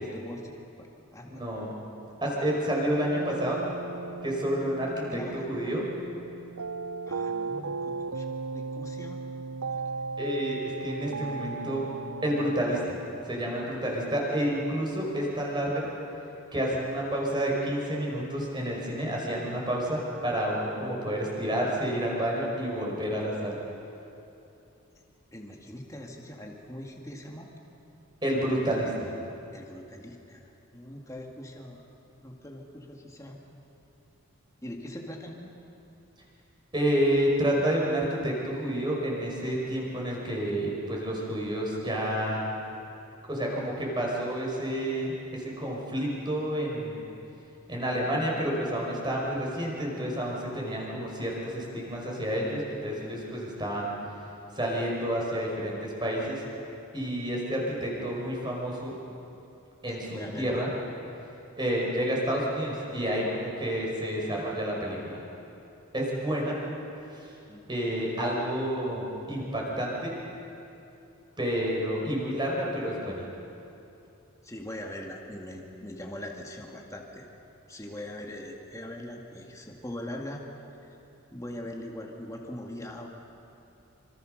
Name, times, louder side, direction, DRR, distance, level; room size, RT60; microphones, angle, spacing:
voice 1, 0.0-1.4 5.1-5.5 7.1-9.2 9.6-9.8 25.3-27.5 29.5-31.8 32.2-33.4 34.6-35.5 60.0-60.6 67.5-67.7 74.4-77.3 77.7-80.4 80.8-81.0 81.3-83.1, left 1 dB, 15° left, 0 dB, 2.2 m, -41 dB
voice 2, 1.3-1.7 2.2-3.6 4.2-5.9 10.2-11.8 12.2-13.0 13.3-15.9 16.5-23.6 28.2-29.1 36.7-42.4 43.3-47.0 47.7-53.9 54.5-56.4 56.9-58.9 59.8-60.7 61.6-65.2 65.9-66.6 67.1-67.3 67.7-70.1 71.4-73.3, equal, 20° right, -2 dB, 5.3 m, -29 dB
sound 1, 3.1-12.6, right 4 dB, 85° right, 0.6 m, -36 dB
26.0 x 25.5 x 6.6 m, 2.8 s
head